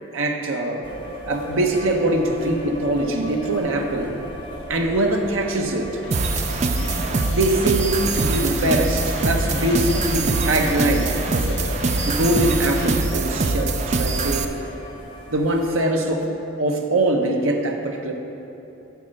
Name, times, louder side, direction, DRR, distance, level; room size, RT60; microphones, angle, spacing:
voice 1, 0.1-0.9 1.2-4.2 4.7-6.0 7.3-11.6 12.0-14.5 15.3-16.3 16.6-18.1, right 1 dB, 75° right, 2 dB, 0.8 m, -22 dB
sound 1, 0.8-15.8, equal, 25° left, 1.2 m, -35 dB
sound 2, 6.0-13.0, left 1 dB, 60° left, 1.6 m, -33 dB
sound 3, 6.1-14.5, right 3 dB, 35° right, 0.3 m, -23 dB
9.1 x 4.4 x 6.4 m, 2.9 s
head